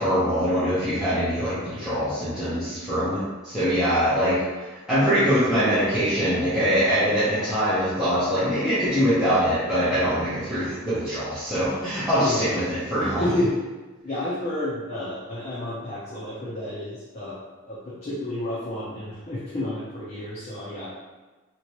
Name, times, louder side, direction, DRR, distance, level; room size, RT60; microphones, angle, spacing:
voice 1, 0.0-13.2, equal, 5° right, -14 dB, 0.8 m, -23 dB
voice 2, 1.4-2.0 12.2-12.6 13.2-13.6 14.0-17.4 17.6-20.9, left 1 dB, 30° left, -9 dB, 0.6 m, -30 dB
3.0 x 2.8 x 2.9 m, 1.2 s
head